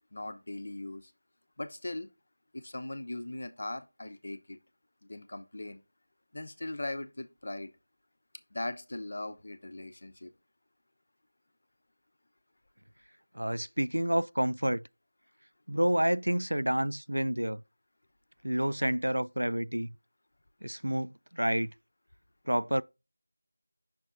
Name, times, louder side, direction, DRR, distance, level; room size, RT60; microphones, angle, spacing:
voice 1, 0.1-1.1 1.6-2.1 2.5-4.6 5.0-5.8 6.3-7.7 8.5-10.3, left 2 dB, 50° left, 0.8 m, -39 dB
voice 2, 13.3-14.8 15.7-17.6 18.4-20.0 20.6-21.7 22.5-22.8, equal, 90° right, 0.3 m, -29 dB
6.1 x 4.2 x 3.7 m
figure-of-eight pair, 170°, 0 cm